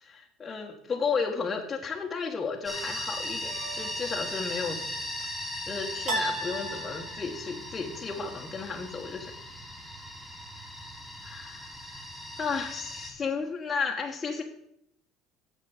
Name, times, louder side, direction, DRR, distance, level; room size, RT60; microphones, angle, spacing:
voice 1, 0.0-4.8 5.7-9.3 11.2-11.7 12.4-14.4, left 5 dB, 25° left, -1 dB, 1.4 m, -33 dB
sound 1, 2.6-13.1, left 1 dB, 5° right, 2.4 m, -38 dB
sound 2, 3.5-4.2 6.1-7.5, right 1 dB, 60° right, 3.7 m, -35 dB
7.5 x 6.6 x 7.2 m, 0.74 s
supercardioid pair, 115°, 0 cm